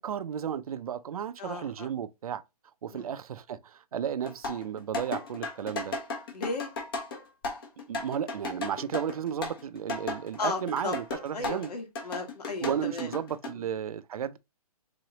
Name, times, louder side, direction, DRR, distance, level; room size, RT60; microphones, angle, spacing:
voice 1, 0.0-2.4 2.8-6.0 7.9-11.7 12.6-14.4, right 8 dB, 65° right, 0.4 m, -33 dB
voice 2, 1.4-1.9 2.9-3.1 6.3-6.7 10.4-10.9 11.3-13.1, left 3 dB, 80° left, 1.5 m, -35 dB
sound 1, 4.2-11.7 12.0-13.5, left 3 dB, 35° left, 0.9 m, -35 dB
3.8 x 3.1 x 2.8 m
hypercardioid pair, 165°, 20 cm